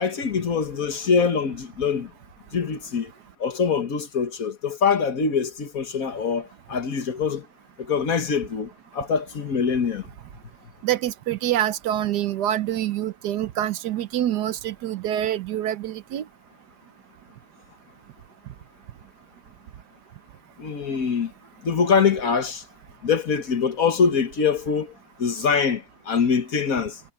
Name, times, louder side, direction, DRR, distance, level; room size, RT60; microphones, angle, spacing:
voice 1, 0.0-2.1 2.5-3.1 3.4-7.5 7.8-10.1 20.6-21.3 21.6-22.6 23.0-27.0, left 6 dB, 55° left, 1.7 m, -24 dB
voice 2, 10.8-16.2, right 12 dB, 70° right, 1.3 m, -26 dB
omnidirectional pair, 1.9 m